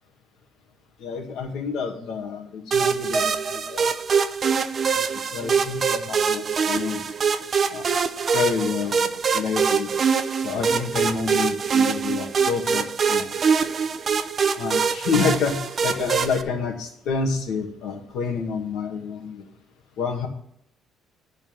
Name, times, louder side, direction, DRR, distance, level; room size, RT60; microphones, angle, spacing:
voice 1, 1.0-3.9 4.9-7.0 7.7-7.9 8.3-10.0 10.4-13.3 14.6-19.4 20.0-20.3, left 5 dB, 65° left, 2 dB, 1.8 m, -28 dB
sound 1, 2.7-16.4, right 6 dB, 30° right, 0.5 m, -24 dB
11.0 x 4.4 x 7.2 m, 0.69 s
cardioid pair, 180°, 0 cm